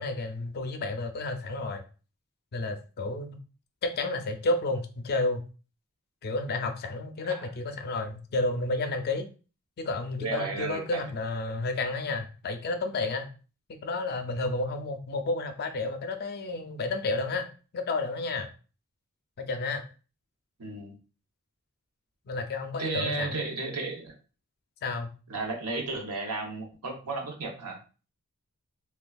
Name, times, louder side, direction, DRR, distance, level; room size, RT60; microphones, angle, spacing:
voice 1, 0.0-1.8 2.5-3.4 3.8-5.4 6.2-9.3 9.8-13.3 13.8-17.5 17.7-18.5 19.4-19.8 22.3-23.5 24.8-25.1, left 2 dB, 45° left, 7 dB, 0.4 m, -31 dB
voice 2, 10.2-11.0 20.6-21.0 22.8-24.2 25.3-27.8, right 3 dB, 90° right, 2 dB, 0.8 m, -33 dB
3.3 x 2.2 x 2.3 m, 0.35 s
head